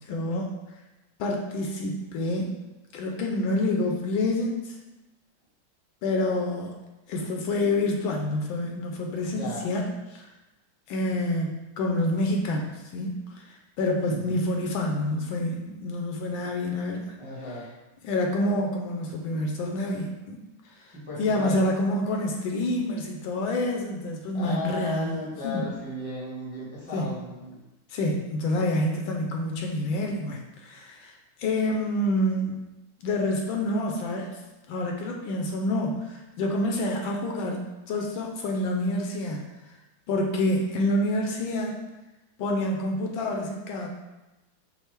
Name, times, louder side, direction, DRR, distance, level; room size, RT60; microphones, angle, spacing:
voice 1, 0.1-0.5 1.2-2.6 2.9-4.8 6.0-6.7 7.1-10.3 10.9-17.1 18.0-20.4 20.8-25.7 26.9-27.1 27.9-31.1 31.4-32.6 33.0-34.4 34.7-39.4 40.1-41.8 42.4-43.9, left 1 dB, 75° left, 1 dB, 1.3 m, -28 dB
voice 2, 9.3-9.6 14.1-14.4 17.2-17.7 20.9-21.6 24.3-27.6, left 1 dB, 10° right, -7 dB, 0.7 m, -35 dB
5.5 x 2.0 x 4.4 m, 1.0 s
omnidirectional pair, 2.3 m